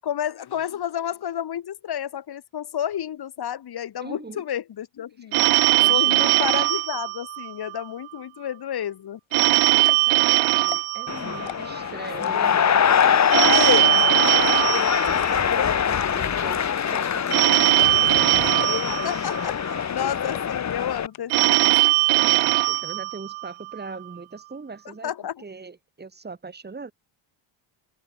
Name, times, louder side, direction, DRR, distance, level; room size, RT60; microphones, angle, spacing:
voice 1, 0.0-5.4 5.9-9.2 13.3-13.9 19.0-21.8 24.9-25.4, left 10 dB, 50° left, 7.9 m, -31 dB
voice 2, 4.0-4.4 5.7-6.3 9.5-18.5 22.2-25.1 25.4-26.9, right 4 dB, 20° right, 6.2 m, -41 dB
Telephone, 5.3-7.8 9.3-11.8 13.3-15.8 17.3-19.8 21.3-23.8, right 21 dB, 85° right, 2.6 m, -20 dB
sound 1, 9.3-9.4 9.8-10.1 10.6-11.0 11.3-11.8 12.2-12.6 13.0-13.3 13.7-13.8 14.1-14.2 14.5-14.8 15.2-15.3 15.9-16.4 16.9-17.1 17.3-17.4 17.8-18.1 18.6-19.0 19.5-19.8 20.3-20.4 20.8-20.9 21.1-21.6 21.8-22.4, left 16 dB, 70° left, 3.2 m, -38 dB
sound 2, 11.1-21.1, left 8 dB, 35° left, 2.1 m, -23 dB
cardioid pair, 115°, 49 cm